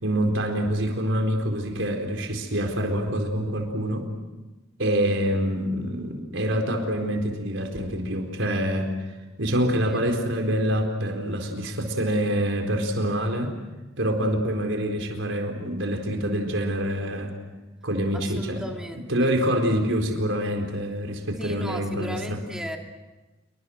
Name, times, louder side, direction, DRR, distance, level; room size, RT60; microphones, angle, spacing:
voice 1, 0.0-4.1 4.8-8.9 9.4-13.5 14.0-17.3 17.8-18.7 19.1-22.4, equal, 75° right, 3 dB, 4.4 m, -26 dB
voice 2, 18.1-19.3 21.4-22.8, equal, 5° right, 2 dB, 2.7 m, -36 dB
27.5 x 24.0 x 6.5 m, 1.2 s
head